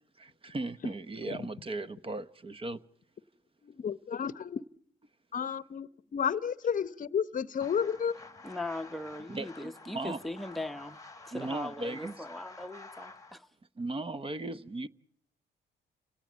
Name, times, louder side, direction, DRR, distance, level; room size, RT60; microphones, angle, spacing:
voice 1, 0.2-2.8 9.3-10.2 11.3-12.2 13.8-14.9, right 2 dB, 25° right, 0.9 m, -37 dB
voice 2, 3.6-4.6 5.3-8.2, left 7 dB, 40° left, 0.8 m, -32 dB
sound 1, 7.6-13.4, left 3 dB, 15° left, 1.4 m, -50 dB
voice 3, 8.4-11.0 11.2-13.5, left 1 dB, ahead, 0.9 m, -39 dB
30.0 x 17.5 x 7.4 m
cardioid pair, 90°, 20 cm